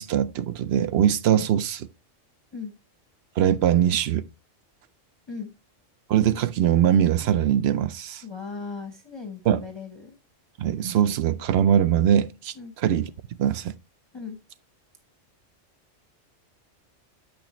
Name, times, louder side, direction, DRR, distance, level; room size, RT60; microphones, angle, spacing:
voice 1, 0.0-1.9 3.4-4.3 6.1-8.2 9.5-9.6 10.6-13.1 13.4-13.7, right 10 dB, 65° right, 0.7 m, -22 dB
voice 2, 8.2-10.2 12.5-12.7 14.1-14.4, left 5 dB, 25° left, 0.8 m, -37 dB
8.4 x 6.3 x 2.9 m
omnidirectional pair, 1.3 m